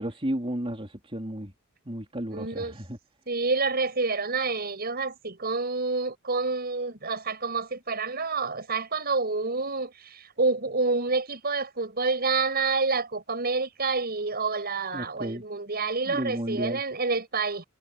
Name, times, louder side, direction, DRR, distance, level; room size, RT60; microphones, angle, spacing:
voice 1, 0.0-1.5 1.9-3.0 14.9-15.4 16.1-16.8, right 1 dB, 25° right, 4.1 m, -33 dB
voice 2, 2.3-2.8 3.3-17.6, right 4 dB, 45° right, 7.0 m, -28 dB
head